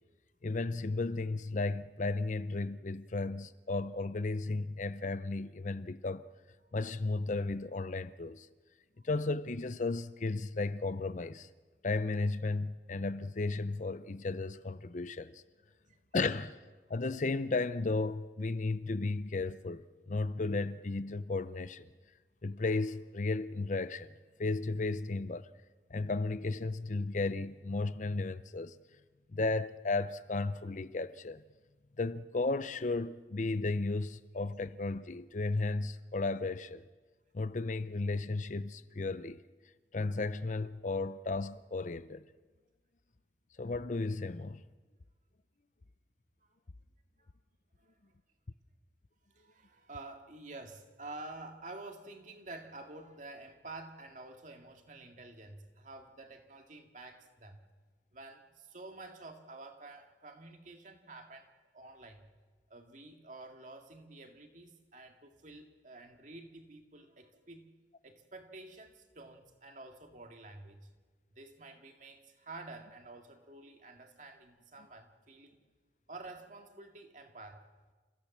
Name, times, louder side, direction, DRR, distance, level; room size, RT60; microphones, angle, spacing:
voice 1, 0.4-6.3 6.7-8.5 9.0-11.5 11.8-15.4 16.1-16.6 16.9-19.8 20.1-21.9 22.4-24.1 24.4-25.5 25.9-28.8 29.3-31.4 32.0-36.8 37.3-39.4 39.9-42.2 43.6-44.6, left 3 dB, 40° left, 0.6 m, -34 dB
voice 2, 49.3-57.6 58.1-62.3 62.7-67.7 68.0-70.9 71.3-75.6 76.1-77.7, right 2 dB, 45° right, 2.1 m, -50 dB
28.5 x 15.5 x 7.3 m
head